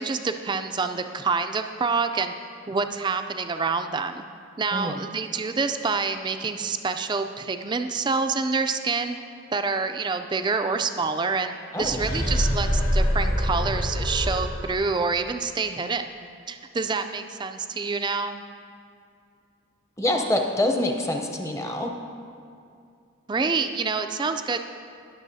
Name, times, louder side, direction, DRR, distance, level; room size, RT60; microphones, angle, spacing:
voice 1, 0.0-2.3 2.7-4.2 4.6-9.2 9.5-11.5 11.8-16.1 16.5-18.4 23.3-24.6, right 4 dB, 20° right, 7 dB, 0.3 m, -27 dB
sound 1, 11.8-14.8, equal, 80° left, 2.2 m, -25 dB
voice 2, 20.0-21.9, left 1 dB, 15° left, 3 dB, 0.7 m, -25 dB
19.5 x 7.0 x 2.7 m, 2.4 s
head